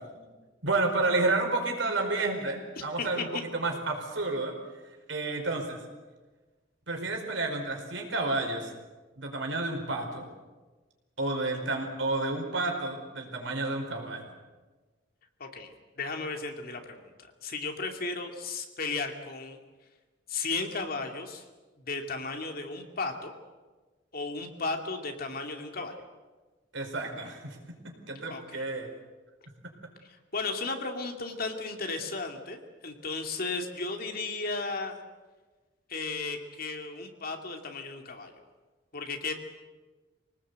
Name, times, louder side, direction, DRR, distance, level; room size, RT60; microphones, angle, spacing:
voice 1, 0.6-3.3 3.5-4.6 5.1-5.8 6.9-8.7 9.2-10.3 11.2-14.2 26.7-27.6 27.8-28.9, right 2 dB, 75° right, 3 dB, 4.9 m, -30 dB
voice 2, 2.8-3.4 15.4-17.1 17.4-19.6 20.3-21.4 21.8-23.3 24.1-26.0 28.3-28.7 30.1-35.0 35.9-38.3 38.9-39.3, left 3 dB, 50° left, 4 dB, 2.6 m, -35 dB
25.0 x 19.0 x 8.2 m, 1.3 s
head